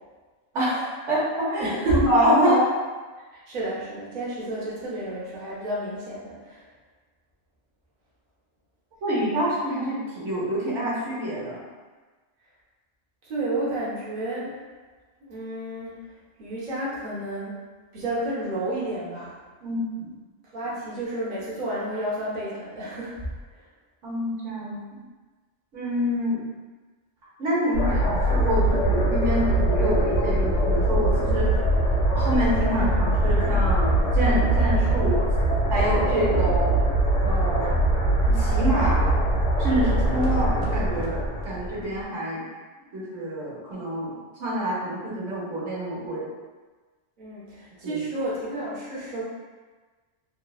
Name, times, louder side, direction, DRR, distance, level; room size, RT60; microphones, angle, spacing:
voice 1, 0.5-2.6 9.0-11.6 19.6-20.1 24.0-24.8 25.7-26.4 27.4-31.7 32.1-35.2 35.7-36.7 37.2-37.8 38.2-39.2 39.6-42.4 42.9-44.1 44.4-46.2 47.8-48.0, equal, 85° right, -7 dB, 1.2 m, -26 dB
voice 2, 1.6-2.0 3.3-6.7 13.2-14.5 15.2-16.0 16.4-17.6 17.9-19.3 20.4-23.1 23.5-23.7 47.2-49.2, right 1 dB, 45° right, -8 dB, 0.8 m, -30 dB
sound 1, 27.7-42.0, right 1 dB, 80° left, 0.9 m, -22 dB
3.0 x 2.1 x 2.3 m, 1.3 s
omnidirectional pair, 1.2 m